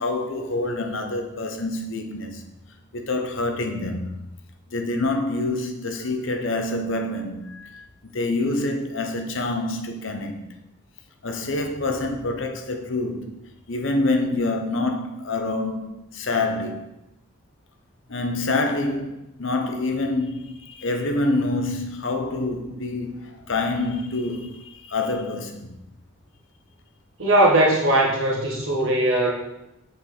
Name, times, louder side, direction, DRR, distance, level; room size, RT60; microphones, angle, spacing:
voice 1, 0.0-2.4 2.9-4.2 4.7-7.8 8.1-10.4 11.2-13.3 13.7-16.9 18.1-25.8, left 2 dB, 65° left, 0.9 m, -26 dB
voice 2, 27.2-29.3, right 1 dB, 70° right, 1.6 m, -19 dB
6.7 x 4.7 x 4.0 m
head